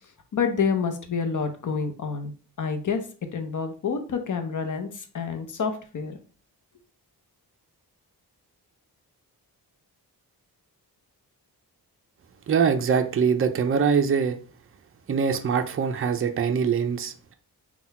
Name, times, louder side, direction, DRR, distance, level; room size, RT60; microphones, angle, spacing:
voice 1, 0.3-2.3 2.6-3.0 3.3-6.2, left 5 dB, 50° left, 6 dB, 0.8 m, -28 dB
voice 2, 12.5-14.4 15.1-17.3, right 6 dB, 35° right, 6 dB, 0.5 m, -23 dB
3.9 x 2.3 x 4.1 m, 0.39 s
wide cardioid pair, 125°, 39 cm